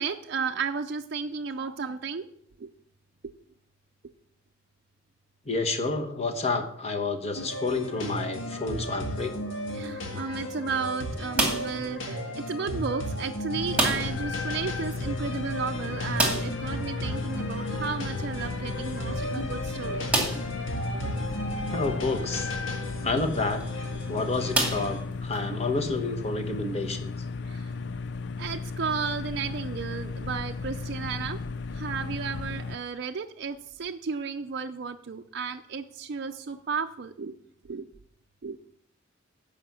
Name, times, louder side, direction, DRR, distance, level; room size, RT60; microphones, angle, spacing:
voice 1, 0.0-2.3 2.6-2.7 9.4-20.2 20.9-21.2 27.5-27.7 28.4-31.4 31.7-37.3 37.7-37.9 38.4-38.6, right 5 dB, 55° right, 4 dB, 0.5 m, -33 dB
voice 2, 5.4-9.3 21.7-22.5 23.0-23.6 24.1-27.1, left 3 dB, 35° left, 6 dB, 1.3 m, -29 dB
sound 1, 7.3-25.0, equal, 85° left, 1.8 m, -35 dB
sound 2, 11.3-11.9 13.7-14.3 14.5-14.6 15.0-15.1 16.1-16.7 18.5-18.6 19.2-19.3 20.1-20.6 21.3-21.4 23.4-23.6 24.5-25.4, right 2 dB, 5° right, 2.3 m, -27 dB
sound 3, 13.5-32.8, left 4 dB, 60° left, 0.5 m, -35 dB
11.5 x 5.1 x 7.6 m, 0.69 s
head